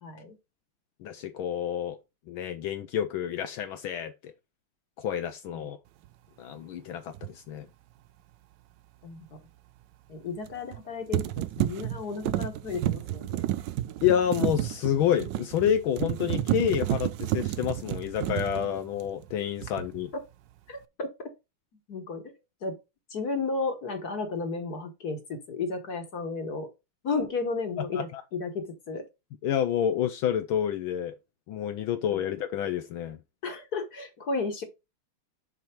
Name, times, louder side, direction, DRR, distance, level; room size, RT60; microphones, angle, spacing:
voice 1, 0.0-0.4 5.5-5.7 9.0-9.4 10.1-13.4 20.7-21.3 21.9-22.8 23.1-26.7 27.0-29.1 32.1-32.2 33.4-34.6, left 4 dB, 50° left, 1.7 m, -33 dB
voice 2, 1.0-2.0 2.3-4.3 5.0-5.8 6.4-7.7 14.0-20.1 27.9-28.2 29.4-31.2 31.5-33.2, left 9 dB, 75° left, 1.4 m, -29 dB
sound 1, 7.1-7.3 10.5-10.8 11.1-19.3 19.6-20.1, right 13 dB, 75° right, 1.1 m, -31 dB
6.9 x 4.7 x 4.3 m
omnidirectional pair, 2.4 m